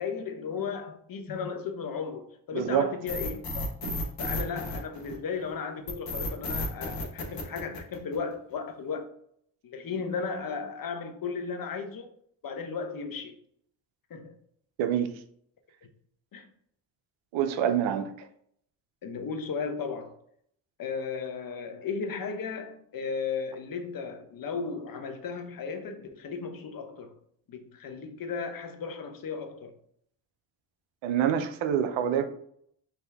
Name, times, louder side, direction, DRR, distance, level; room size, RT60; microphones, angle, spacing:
voice 1, 0.0-3.7 4.2-9.1 9.6-12.1 12.4-13.4 14.1-14.3 16.3-16.4 19.0-20.1 20.8-27.1 27.5-29.7, left 5 dB, 45° left, 0.9 m, -35 dB
voice 2, 2.5-2.9 3.8-3.9 14.8-15.1 17.3-18.1 31.0-32.2, right 9 dB, 65° right, 0.7 m, -26 dB
sound 1, 3.1-5.3 5.9-8.3, left 2 dB, 60° left, 1.2 m, -33 dB
3.4 x 2.8 x 3.4 m
supercardioid pair, 55°, 49 cm